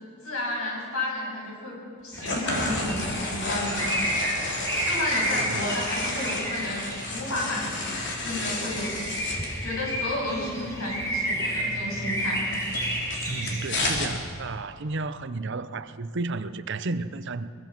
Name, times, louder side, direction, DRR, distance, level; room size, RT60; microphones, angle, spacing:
voice 1, 0.2-4.3 4.8-7.9 8.2-8.9 9.6-12.5, left 1 dB, 70° left, 7.7 m, -32 dB
sound 1, 2.1-13.7, equal, 15° left, 3.8 m, -31 dB
sound 2, 2.2-9.5 11.9-14.1, left 2 dB, 55° left, 3.4 m, -32 dB
voice 2, 5.3-5.7 13.3-17.5, right 3 dB, 55° right, 0.7 m, -32 dB
22.5 x 22.0 x 6.1 m
head